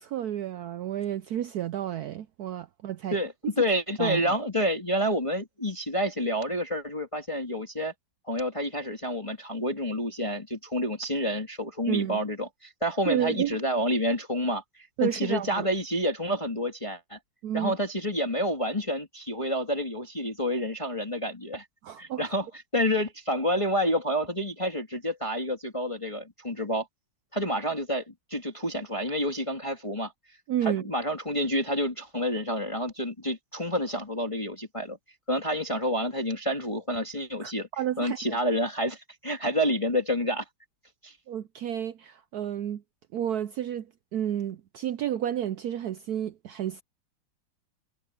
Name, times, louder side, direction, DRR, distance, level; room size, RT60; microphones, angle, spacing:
voice 1, 0.0-3.2 4.0-4.2 11.9-12.2 13.1-13.6 15.0-15.7 17.4-17.7 21.8-22.2 30.5-30.9 37.4-38.4 41.3-42.8 43.1-46.8, right 10 dB, 75° right, 0.9 m, -31 dB
voice 2, 3.1-7.9 8.3-17.2 17.5-21.6 22.0-22.5 22.7-26.9 27.3-30.1 30.6-35.0 35.3-37.7 38.0-40.4 41.0-41.1, equal, 15° left, 2.3 m, -29 dB
omnidirectional pair, 2.2 m